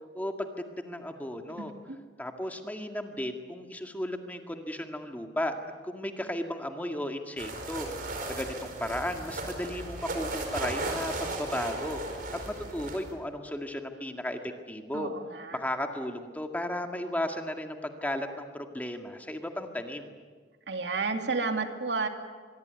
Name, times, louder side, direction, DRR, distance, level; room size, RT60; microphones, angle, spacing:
voice 1, 0.1-1.7 2.2-5.5 5.8-7.9 8.3-12.2 12.5-15.1 15.5-20.1, left 1 dB, 10° left, 4 dB, 2.0 m, -35 dB
sound 1, 7.4-13.1, right 2 dB, 55° right, 5.0 m, -36 dB
voice 2, 14.9-15.6 20.7-22.1, right 4 dB, 75° right, 5 dB, 2.4 m, -31 dB
25.0 x 22.0 x 9.4 m, 1.5 s
head